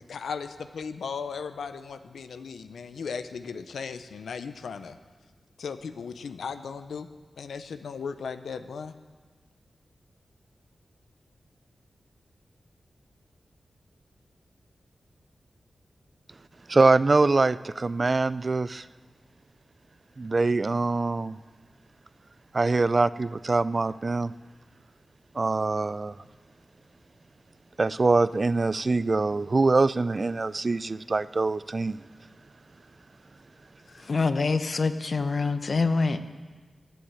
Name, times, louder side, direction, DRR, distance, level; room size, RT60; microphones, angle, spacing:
voice 1, 0.0-5.0 5.6-7.1 7.4-8.9, left 5 dB, 90° left, 0.7 m, -36 dB
voice 2, 16.7-18.9 20.2-21.4 22.5-24.3 25.3-26.1 27.8-32.0, right 3 dB, 45° right, 0.4 m, -24 dB
voice 3, 34.1-36.2, left 4 dB, 60° left, 0.9 m, -25 dB
15.5 x 8.1 x 8.7 m
cardioid pair, 45°, 0 cm